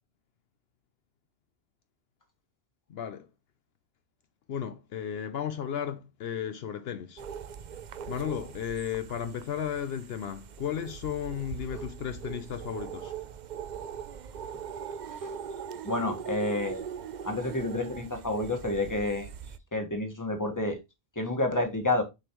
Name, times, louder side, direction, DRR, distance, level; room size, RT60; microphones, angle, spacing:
voice 1, 2.9-3.3 4.5-7.2 8.1-13.1, left 8 dB, 70° left, 0.8 m, -34 dB
sound 1, 7.2-19.6, right 7 dB, 55° right, 0.6 m, -41 dB
voice 2, 15.8-16.8 17.2-19.3 19.7-20.8 21.1-22.0, left 2 dB, 20° left, 1.4 m, -29 dB
6.7 x 5.2 x 3.0 m
omnidirectional pair, 1.1 m